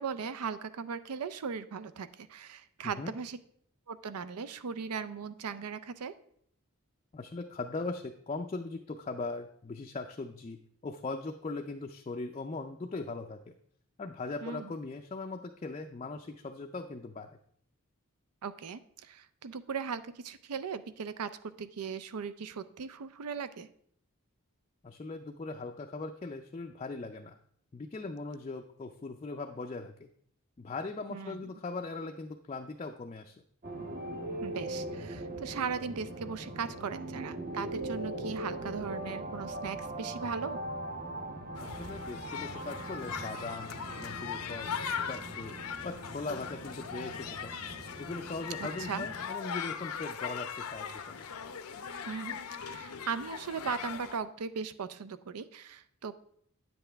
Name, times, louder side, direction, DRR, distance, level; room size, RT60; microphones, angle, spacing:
voice 1, 0.0-3.4 3.9-6.1 14.4-14.7 18.4-23.7 31.1-31.5 34.4-40.6 48.6-49.1 52.1-56.1, right 6 dB, 90° right, 14 dB, 0.5 m, -38 dB
voice 2, 7.1-13.5 14.0-17.3 24.8-27.4 27.7-30.1 30.6-33.3 41.6-44.7 45.1-45.6 45.8-47.6 48.0-51.3, left 3 dB, 30° left, 3 dB, 0.3 m, -40 dB
sound 1, 33.6-49.2, right 1 dB, 40° right, 0.9 m, -41 dB
sound 2, 41.5-54.2, left 7 dB, 90° left, 0.6 m, -40 dB
9.1 x 7.7 x 3.4 m, 0.65 s
head